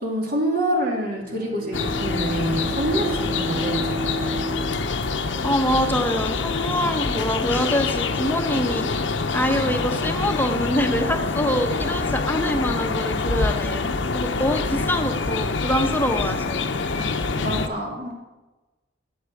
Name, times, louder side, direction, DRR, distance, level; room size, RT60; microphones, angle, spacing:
voice 1, 0.0-4.3 17.4-18.2, right 1 dB, 50° right, -1 dB, 2.2 m, -27 dB
Bowed string instrument, 1.2-6.0, equal, 30° right, 0.5 m, -32 dB
sound 1, 1.7-17.7, left 4 dB, 80° left, 0.8 m, -26 dB
voice 2, 5.4-8.9 9.3-16.6, equal, 10° left, 5 dB, 0.9 m, -25 dB
8.3 x 8.2 x 7.0 m, 1.1 s
head